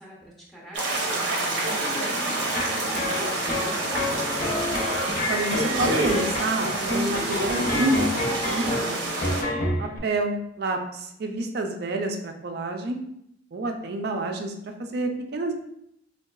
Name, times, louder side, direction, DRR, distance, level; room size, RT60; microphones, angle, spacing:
voice 1, 0.0-4.1, right 1 dB, ahead, -4 dB, 0.6 m, -42 dB
sound 1, 0.7-9.4, right 2 dB, 90° right, 0.7 m, -28 dB
sound 2, 1.4-9.3, left 2 dB, 85° left, 0.6 m, -39 dB
sound 3, 2.5-10.0, left 1 dB, 50° left, 0.6 m, -29 dB
voice 2, 5.3-7.9 8.2-9.1 9.8-13.0 13.5-15.5, right 2 dB, 60° right, 4 dB, 0.4 m, -29 dB
4.6 x 2.3 x 2.3 m, 0.76 s
head